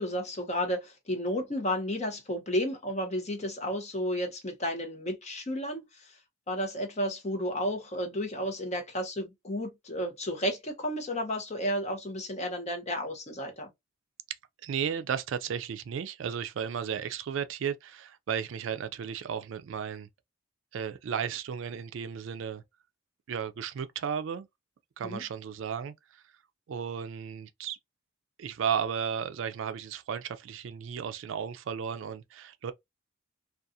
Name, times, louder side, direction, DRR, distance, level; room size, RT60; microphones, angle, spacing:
voice 1, 0.0-6.2 6.5-13.7 25.0-25.2, equal, 30° left, 0.7 m, -32 dB
voice 2, 14.6-20.1 20.7-22.6 23.3-24.5 25.0-26.2 26.7-27.8 28.4-32.7, right 7 dB, 65° right, 0.3 m, -34 dB
2.4 x 2.3 x 2.6 m
head